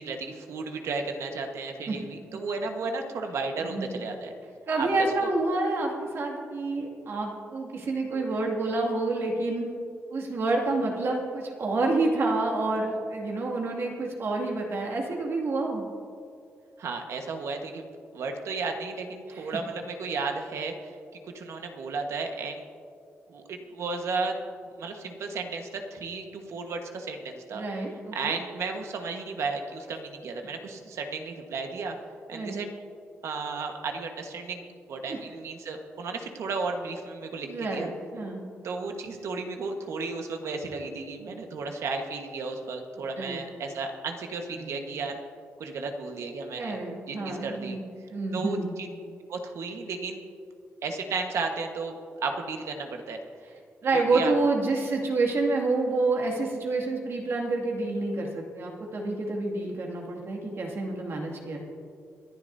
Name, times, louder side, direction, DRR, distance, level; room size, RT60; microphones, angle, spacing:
voice 1, 0.0-4.3 4.8-5.3 16.8-17.8 18.1-20.9 21.3-22.6 23.3-24.4 24.8-27.6 28.1-32.0 32.3-32.7 33.2-37.9 38.6-45.2 45.6-46.8 47.1-47.8 48.3-48.9 49.3-50.2 50.8-53.2 53.9-54.3, right 4 dB, 75° right, 4 dB, 1.4 m, -34 dB
voice 2, 3.6-4.0 4.7-9.7 10.1-15.8 19.3-19.5 27.5-28.4 32.3-32.6 35.1-35.2 37.4-38.4 43.2-43.4 44.5-44.7 46.5-47.8 48.1-48.7 53.8-61.6, right 3 dB, 55° right, -1 dB, 2.3 m, -28 dB
24.5 x 11.0 x 2.7 m, 2.4 s
cardioid pair, 120°, 5 cm